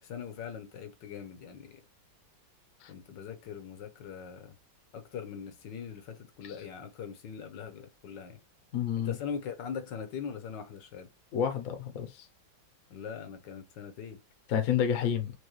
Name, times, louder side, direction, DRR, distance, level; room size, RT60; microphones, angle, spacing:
voice 1, 0.0-1.8 2.9-4.6 4.9-8.4 9.0-11.1 12.9-14.2, left 7 dB, 70° left, 1.4 m, -41 dB
voice 2, 8.7-9.1 11.3-12.3 14.5-15.3, left 8 dB, 55° left, 1.0 m, -29 dB
4.7 x 2.6 x 3.0 m
omnidirectional pair, 2.1 m